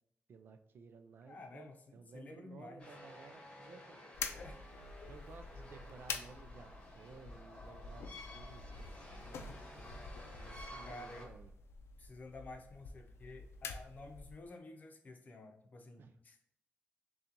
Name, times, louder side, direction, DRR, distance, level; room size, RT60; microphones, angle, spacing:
voice 1, 0.3-4.3 5.0-6.7 6.9-10.1 10.3-11.5 16.0-16.1, right 5 dB, 60° right, 8 dB, 0.4 m, -56 dB
voice 2, 1.2-2.8 4.3-4.6 5.0-5.2 10.8-11.3 12.0-16.4, left 2 dB, 40° left, 4 dB, 0.7 m, -52 dB
sound 1, 2.8-11.3, left 1 dB, 25° left, 1.2 m, -53 dB
sound 2, 4.1-14.5, left 5 dB, 80° left, 0.4 m, -47 dB
6.5 x 2.4 x 2.9 m, 0.71 s
wide cardioid pair, 135°, 4 cm